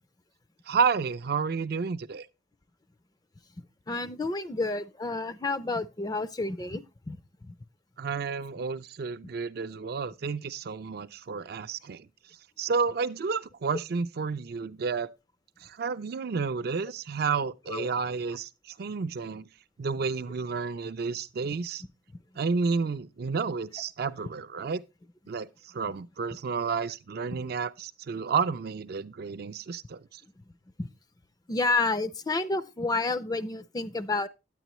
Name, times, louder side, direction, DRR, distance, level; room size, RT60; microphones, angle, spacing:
voice 1, 0.7-2.3 8.0-12.1 12.6-15.1 15.6-19.5 19.8-21.8 22.4-24.8 25.3-30.2, right 5 dB, 50° right, 0.4 m, -31 dB
voice 2, 3.9-7.2 7.4-7.5 17.7-17.9 27.3-27.4 30.8-30.9 31.5-34.3, left 3 dB, 20° left, 0.4 m, -30 dB
9.1 x 9.1 x 3.0 m
head